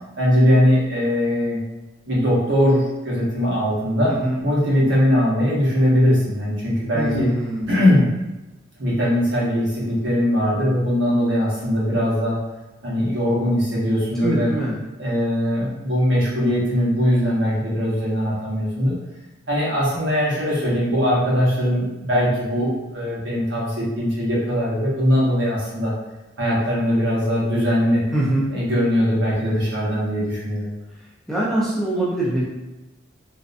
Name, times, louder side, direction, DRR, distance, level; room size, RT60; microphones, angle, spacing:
voice 1, 0.2-1.6 2.1-4.1 4.4-7.3 7.7-8.1 8.8-12.4 12.8-14.5 15.0-18.9 19.5-25.9 26.4-28.0 28.5-30.7, equal, 65° right, -6 dB, 0.9 m, -20 dB
voice 2, 6.9-7.7 14.2-14.8 28.1-28.5 31.3-32.4, right 1 dB, ahead, -7 dB, 0.4 m, -23 dB
2.6 x 2.1 x 2.5 m, 1.0 s
head